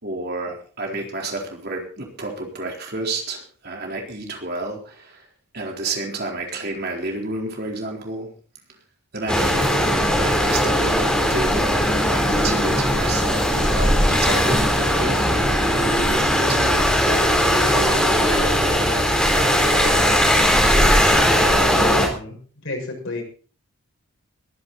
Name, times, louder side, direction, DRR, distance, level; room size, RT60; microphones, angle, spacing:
voice 1, 0.0-5.2 5.5-8.3 9.1-11.8 12.1-15.3 15.7-16.8 17.7-20.2, right 2 dB, 45° right, 1 dB, 4.1 m, -31 dB
sound 1, 9.3-22.1, equal, 5° left, 4.0 m, -19 dB
voice 2, 21.9-22.4 22.6-23.2, left 2 dB, 55° left, 1 dB, 7.0 m, -31 dB
22.0 x 10.5 x 4.3 m, 0.40 s
head